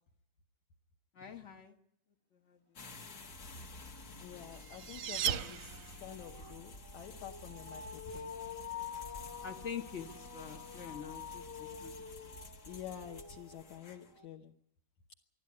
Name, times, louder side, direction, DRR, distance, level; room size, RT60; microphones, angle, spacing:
voice 1, 1.1-1.8 2.3-2.6 8.1-8.2 9.4-11.9, left 7 dB, 85° left, 2 dB, 0.6 m, -45 dB
sound 1, 2.8-14.2, left 2 dB, 50° left, 1.1 m, -52 dB
sound 2, 3.0-3.1 3.5-14.3, left 6 dB, 30° left, 0.4 m, -49 dB
voice 2, 4.2-8.3 12.7-14.6, left 10 dB, 70° left, 3 dB, 2.1 m, -48 dB
sound 3, 4.2-6.3, right 9 dB, 90° right, 2.7 m, -37 dB
25.5 x 12.0 x 9.7 m, 0.74 s
omnidirectional pair, 3.8 m